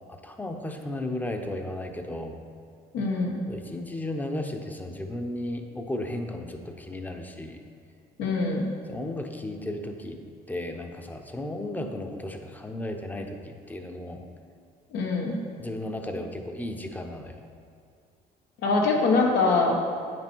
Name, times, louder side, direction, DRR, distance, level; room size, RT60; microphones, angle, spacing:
voice 1, 0.1-2.4 3.5-7.6 8.9-10.2 10.5-14.2 15.6-17.4, left 1 dB, 10° left, 4 dB, 0.8 m, -34 dB
voice 2, 2.9-3.4 8.2-8.6 14.9-15.4 18.6-19.8, left 3 dB, 85° left, 0 dB, 1.4 m, -23 dB
9.2 x 6.2 x 4.5 m, 2.3 s
cardioid pair, 110°, 17 cm